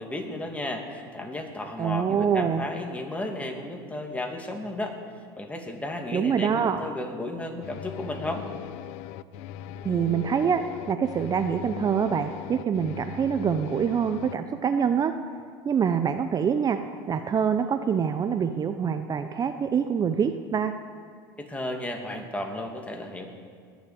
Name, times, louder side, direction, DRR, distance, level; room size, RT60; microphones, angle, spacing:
voice 1, 0.0-5.0 5.4-8.4 21.4-23.3, left 1 dB, 10° left, 2 dB, 2.6 m, -34 dB
voice 2, 1.8-2.6 6.1-6.8 9.8-15.1 15.6-16.8 17.1-20.7, right 7 dB, 30° right, 8 dB, 0.8 m, -25 dB
sound 1, 7.6-14.3, left 11 dB, 65° left, 0.5 m, -39 dB
20.0 x 7.3 x 9.0 m, 2.1 s
hypercardioid pair, 90°, 12 cm